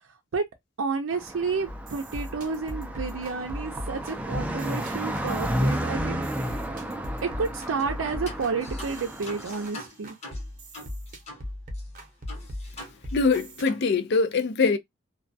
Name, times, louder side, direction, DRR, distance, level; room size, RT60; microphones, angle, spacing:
voice 1, 0.8-6.2 7.2-10.1, right 4 dB, 85° right, 0.5 m, -30 dB
Car passing by, 1.1-9.7, equal, 5° right, 0.4 m, -32 dB
sound 1, 1.7-13.7, left 1 dB, 45° right, 0.7 m, -38 dB
sound 2, 7.8-8.0 8.3-11.5 11.7-11.8 12.3-13.4 13.7-13.9, left 1 dB, 35° left, 0.9 m, -43 dB
voice 2, 13.1-14.8, left 4 dB, 60° left, 0.4 m, -23 dB
2.3 x 2.1 x 2.5 m
head